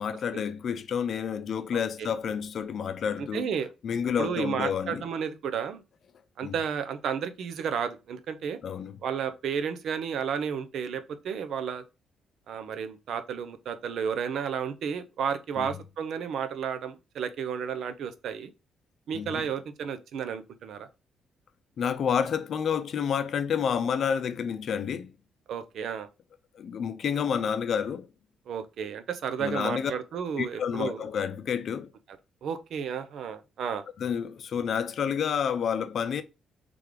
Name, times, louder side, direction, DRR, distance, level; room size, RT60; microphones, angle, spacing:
voice 1, 0.0-3.5 3.8-5.0 6.4-6.5 8.6-9.0 15.6-15.8 19.1-19.5 21.8-25.1 26.5-28.1 29.4-29.9 30.4-31.9 34.0-36.2, left 7 dB, 60° left, 0.5 m, -29 dB
voice 2, 1.7-2.1 3.2-3.7 4.2-5.8 6.4-8.6 9.0-11.8 12.5-18.5 19.1-20.9 25.5-26.1 28.5-31.0 32.4-33.8, right 7 dB, 70° right, 0.6 m, -32 dB
3.3 x 3.3 x 3.7 m
cardioid pair, 90°, 0 cm